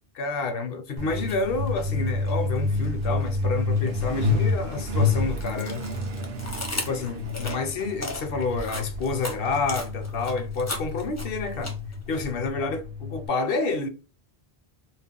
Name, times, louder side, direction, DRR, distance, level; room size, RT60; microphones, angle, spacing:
voice 1, 0.1-5.9 6.7-11.7 12.1-13.9, left 3 dB, 65° left, 0.7 m, -29 dB
Truck, 1.0-13.3, left 3 dB, 65° right, 0.7 m, -29 dB
sound 1, 1.2-1.4 1.8-3.3 3.7-12.2, left 1 dB, 20° left, 0.5 m, -36 dB
2.4 x 2.1 x 3.5 m
omnidirectional pair, 1.1 m